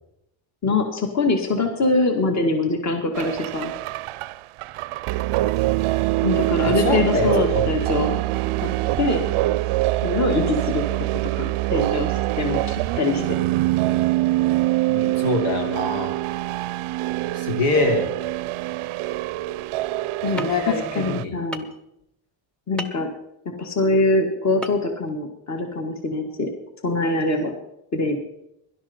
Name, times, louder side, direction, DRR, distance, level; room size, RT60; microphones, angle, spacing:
voice 1, 0.6-3.7 6.2-8.2 8.6-8.7 9.0-9.3 10.0-10.8 11.2-13.2 20.2-20.5 21.0-21.6 22.7-23.1 23.6-26.5 26.8-27.5 27.9-28.2, left 2 dB, 35° left, 4 dB, 1.9 m, -23 dB
sound 1, 3.1-21.2, right 17 dB, 80° right, 0.6 m, -24 dB
voice 2, 6.6-7.7 14.8-16.1 17.3-18.1 20.3-21.4, left 3 dB, 85° left, 2 dB, 3.3 m, -24 dB
sound 2, 20.4-20.5 21.5-21.8 22.8-23.0 24.6-24.8 25.1-25.2, right 1 dB, ahead, 0.7 m, -31 dB
17.5 x 11.5 x 4.4 m, 0.80 s
cardioid pair, 155°, 50 cm